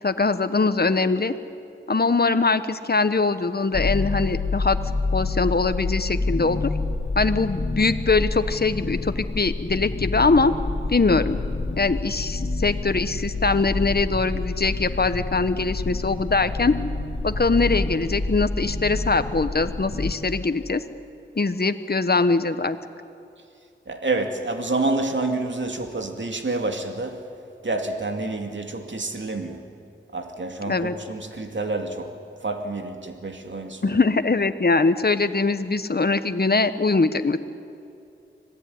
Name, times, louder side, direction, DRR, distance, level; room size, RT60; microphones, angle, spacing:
voice 1, 0.0-1.3 1.9-4.8 5.1-6.7 7.1-10.5 10.9-11.4 11.8-16.7 17.2-20.8 21.4-22.8 30.7-30.9 33.8-37.4, left 3 dB, 50° left, 11 dB, 1.2 m, -22 dB
sound 1, 3.7-20.1, left 3 dB, 70° left, 1.8 m, -28 dB
voice 2, 23.9-27.2 27.6-29.6 30.1-32.1 32.4-33.9, right 2 dB, 65° right, 4 dB, 2.4 m, -28 dB
26.0 x 19.0 x 9.5 m, 2.5 s
wide cardioid pair, 50°, 20 cm